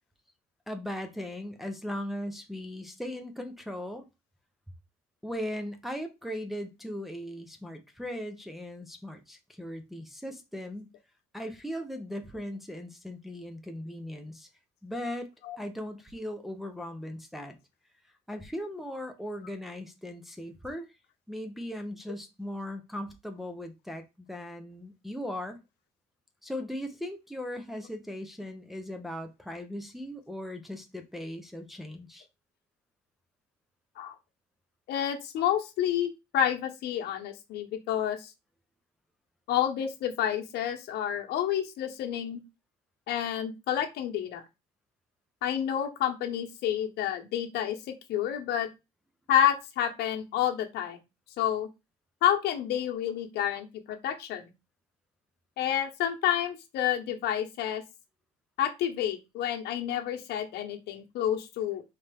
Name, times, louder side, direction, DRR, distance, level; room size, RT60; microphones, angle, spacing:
voice 1, 0.7-4.0 5.2-10.9 11.3-14.5 14.8-15.3 15.6-17.6 18.3-20.9 21.3-24.0 24.3-25.6 26.4-32.3, left 1 dB, ahead, 0.8 m, -38 dB
voice 2, 34.9-38.3 39.5-42.4 43.1-44.4 45.4-47.8 48.1-48.7 49.3-51.0 51.4-51.7 52.2-54.5 55.6-57.8 58.6-61.8, left 10 dB, 75° left, 1.0 m, -29 dB
4.3 x 3.2 x 3.4 m
cardioid pair, 110°, 17 cm